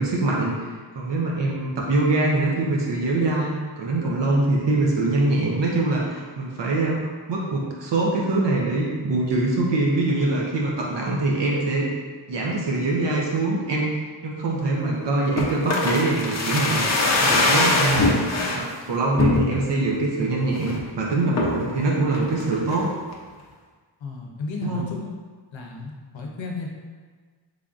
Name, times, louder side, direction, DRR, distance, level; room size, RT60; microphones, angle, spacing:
voice 1, 0.0-7.0 7.3-11.9 12.3-13.9 14.2-16.9 17.2-18.1 18.6-22.9 24.6-24.9, right 2 dB, 65° right, -3 dB, 0.6 m, -23 dB
sound 1, 15.4-18.6 19.2-19.8 20.2-20.3 20.6-20.9 21.4-21.7 22.1-22.8 23.1-23.2, left 2 dB, 40° left, 0.4 m, -22 dB
voice 2, 24.0-25.1 25.5-26.7, left 3 dB, 75° left, 0 dB, 0.7 m, -33 dB
3.8 x 3.4 x 2.4 m, 1.5 s
wide cardioid pair, 140°, 46 cm